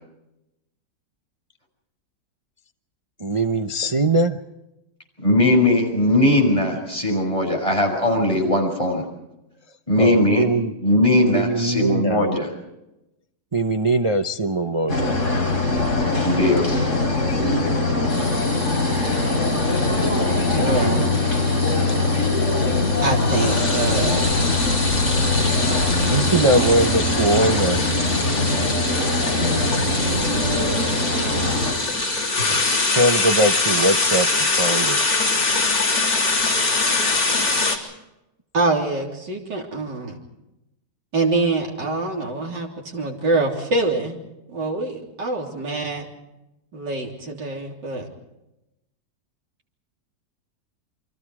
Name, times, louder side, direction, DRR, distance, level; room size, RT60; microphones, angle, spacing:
voice 1, 3.2-4.4 10.0-10.7 11.3-12.2 13.5-15.1 25.9-27.8 30.5-30.8 32.5-32.6 32.9-35.0, right 1 dB, 30° right, 6 dB, 0.5 m, -21 dB
voice 2, 5.2-9.0 9.9-10.4 10.8-12.5 16.2-16.6, left 1 dB, 15° left, 0 dB, 6.4 m, -19 dB
sound 1, 14.9-31.7, left 2 dB, 45° left, 5.0 m, -22 dB
sound 2, 18.1-37.8, left 3 dB, 80° left, 4.1 m, -24 dB
voice 3, 20.5-21.1 23.0-24.2 38.5-40.2 41.1-44.2 44.5-46.1 46.7-48.1, right 2 dB, 75° right, 0 dB, 4.0 m, -24 dB
29.0 x 24.5 x 4.8 m, 0.92 s
omnidirectional pair, 1.9 m